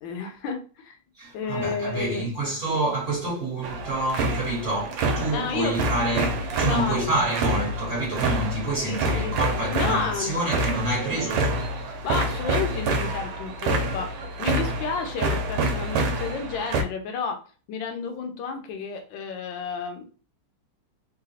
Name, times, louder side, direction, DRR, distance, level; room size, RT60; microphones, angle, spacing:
voice 1, 0.0-1.0 1.3-2.3 5.3-5.7 6.6-7.0 8.8-9.3 9.7-10.3 12.0-14.1 14.4-17.4 17.7-20.1, left 5 dB, 75° left, 1.3 m, -31 dB
voice 2, 1.2-11.9, right 1 dB, 40° right, 1.3 m, -28 dB
sound 1, 3.6-16.8, right 2 dB, 85° right, 1.5 m, -27 dB
3.9 x 2.2 x 2.7 m
omnidirectional pair, 2.4 m